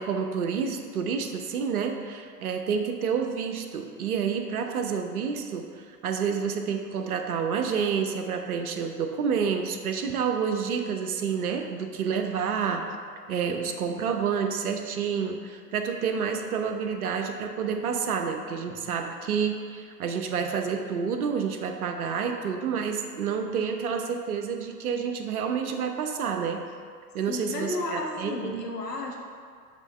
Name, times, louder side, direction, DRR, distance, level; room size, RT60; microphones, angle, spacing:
voice 1, 0.0-12.9 13.3-26.6 27.1-28.6, right 6 dB, 65° right, 5 dB, 0.9 m, -29 dB
voice 2, 27.3-29.2, left 2 dB, 80° left, 0 dB, 1.3 m, -33 dB
7.2 x 3.7 x 5.4 m, 2.1 s
figure-of-eight pair, 100°, 48 cm